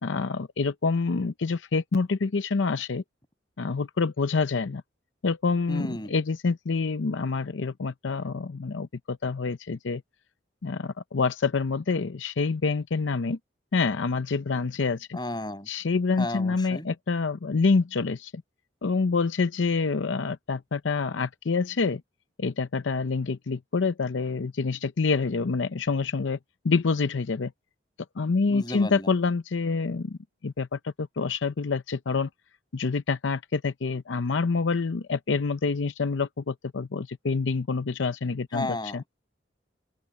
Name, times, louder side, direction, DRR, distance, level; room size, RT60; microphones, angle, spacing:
voice 1, 0.0-3.0 3.6-4.8 5.2-10.0 10.6-13.4 13.7-15.2 15.7-18.4 18.8-22.0 22.4-26.4 26.6-27.5 28.2-30.2 30.4-32.3 32.7-39.0, left 4 dB, 80° left, 0.6 m, -27 dB
voice 2, 5.7-6.2 15.1-15.7 16.2-16.9 28.5-29.1 38.5-39.1, left 1 dB, 20° left, 7.6 m, -33 dB
open air
head